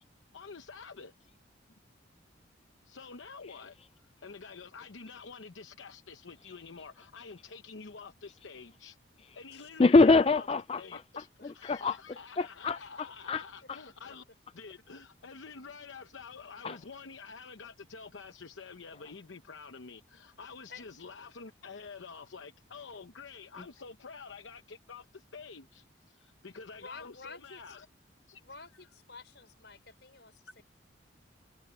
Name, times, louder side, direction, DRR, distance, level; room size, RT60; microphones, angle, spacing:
voice 1, 0.3-1.1 2.8-3.8 4.0-10.5 10.8-14.2 14.5-27.9 28.3-28.4, left 5 dB, 80° left, 0.8 m, -48 dB
voice 2, 9.8-10.8 11.6-12.0 12.4-12.8 13.3-13.4 16.6-16.8, left 3 dB, 30° left, 0.4 m, -23 dB
voice 3, 26.6-27.8 28.4-30.6, left 4 dB, 65° left, 4.8 m, -50 dB
head